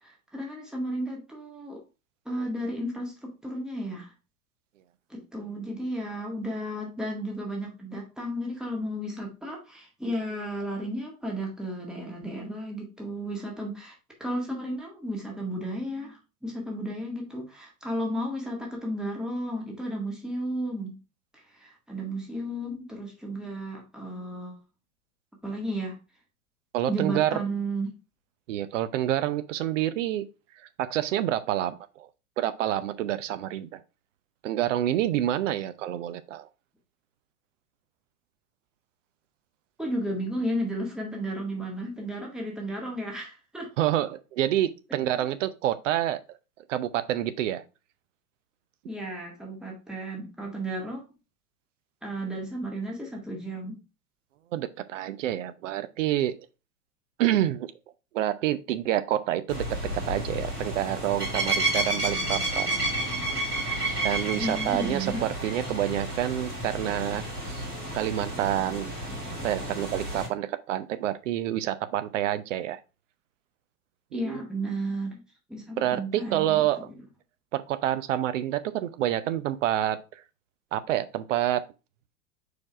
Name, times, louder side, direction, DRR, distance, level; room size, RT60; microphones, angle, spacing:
voice 1, 0.0-1.8 2.2-4.1 5.1-21.0 21.3-24.6 25.4-25.9 26.9-27.9 39.8-43.7 45.0-45.2 48.8-51.1 52.0-53.8 64.3-65.2 74.1-75.2 75.5-76.9, right 1 dB, ahead, 1.7 m, -33 dB
voice 2, 26.7-27.4 28.5-30.3 30.8-32.1 32.4-33.8 34.4-36.5 43.8-46.2 46.7-47.6 54.5-56.3 57.2-57.7 58.1-59.6 60.1-62.7 64.0-67.6 67.9-68.9 69.4-72.8 74.1-74.4 75.8-76.9 77.5-80.0 80.7-81.6, right 12 dB, 55° right, 0.8 m, -28 dB
sound 1, 59.5-70.3, right 1 dB, 90° right, 2.8 m, -31 dB
4.8 x 4.4 x 4.5 m
figure-of-eight pair, 95°, 45 cm